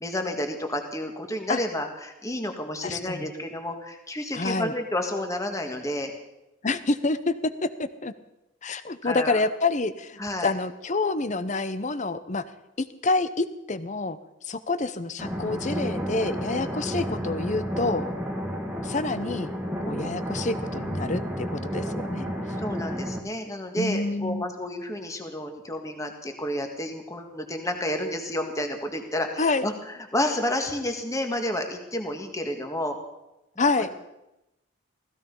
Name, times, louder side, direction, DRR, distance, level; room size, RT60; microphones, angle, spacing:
voice 1, 0.0-6.1 9.0-9.4 10.2-10.5 22.6-29.7 30.1-33.0, left 1 dB, 15° left, 4 dB, 1.7 m, -30 dB
voice 2, 2.8-3.3 4.3-4.7 6.6-8.1 8.6-12.5 12.8-14.2 14.4-18.1 18.8-19.5 19.9-22.3 23.7-24.5 29.4-29.7 33.6-33.9, left 3 dB, 35° left, 13 dB, 0.8 m, -27 dB
sound 1, 15.2-23.2, equal, 10° right, 1.7 m, -31 dB
16.0 x 16.0 x 5.4 m, 0.94 s
head